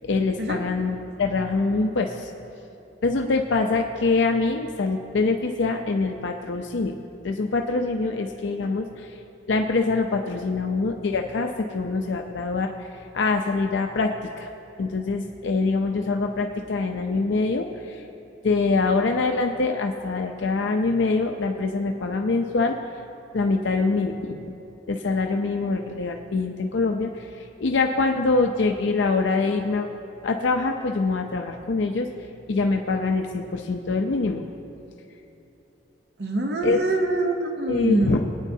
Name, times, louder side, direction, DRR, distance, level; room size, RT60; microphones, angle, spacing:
voice 1, 0.0-2.3 3.0-6.9 7.2-9.2 9.5-14.5 14.8-18.0 18.4-22.8 23.3-24.4 24.9-29.9 30.2-32.1 32.5-34.4 36.6-36.8 37.7-38.2, left 3 dB, 75° left, 3 dB, 0.5 m, -24 dB
voice 2, 36.2-38.2, right 2 dB, 60° right, 3 dB, 0.8 m, -25 dB
21.5 x 9.2 x 2.7 m, 2.8 s
head